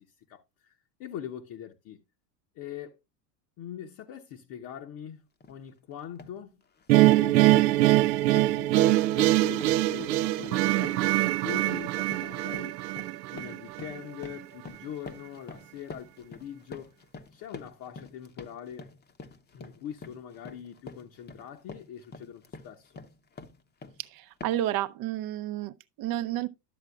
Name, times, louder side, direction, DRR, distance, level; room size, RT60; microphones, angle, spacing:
voice 1, 0.0-2.0 2.5-3.0 3.6-5.2 5.5-6.6 7.0-12.8 13.3-16.9 17.3-18.9 19.5-23.0, left 9 dB, 45° left, 1.0 m, -43 dB
sound 1, 5.4-5.6 6.0-6.4 6.8-24.0 24.4-24.8, left 4 dB, 20° left, 0.8 m, -47 dB
sound 2, 6.9-14.0, right 16 dB, 90° right, 0.6 m, -23 dB
voice 2, 24.1-26.5, right 13 dB, 45° right, 0.6 m, -31 dB
12.0 x 7.3 x 2.3 m
supercardioid pair, 110°, 49 cm